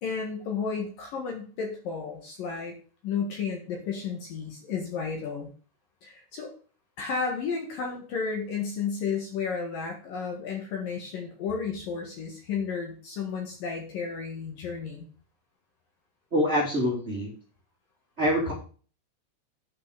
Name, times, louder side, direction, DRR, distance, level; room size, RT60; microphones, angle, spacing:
voice 1, 0.0-2.7 3.0-5.5 6.0-6.5 7.0-15.1, left 5 dB, 60° left, 2 dB, 2.7 m, -32 dB
voice 2, 16.3-17.3 18.2-18.5, equal, 20° right, -5 dB, 2.4 m, -25 dB
9.4 x 6.0 x 6.7 m, 0.39 s
omnidirectional pair, 5.6 m